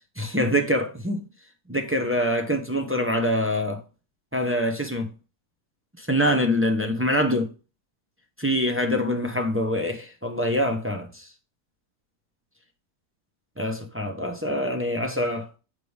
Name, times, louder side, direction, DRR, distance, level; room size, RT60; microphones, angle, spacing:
voice 1, 0.2-1.2 1.7-3.8 4.3-5.1 6.0-7.5 8.4-11.3 13.6-15.5, equal, 10° right, 0.6 m, -25 dB
6.4 x 5.4 x 3.4 m
omnidirectional pair, 1.8 m